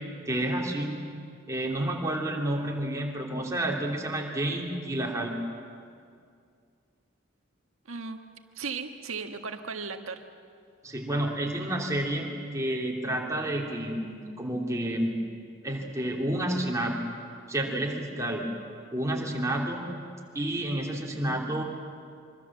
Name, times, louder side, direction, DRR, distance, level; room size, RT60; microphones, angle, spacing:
voice 1, 0.3-1.0 1.5-5.4 10.8-15.1 15.6-17.0 17.5-18.4 18.9-19.8 20.3-21.6, right 1 dB, 15° right, -1 dB, 3.2 m, -30 dB
voice 2, 7.9-8.2 8.5-10.2, right 5 dB, 90° right, 5 dB, 1.6 m, -36 dB
25.0 x 24.0 x 7.5 m, 2.2 s
head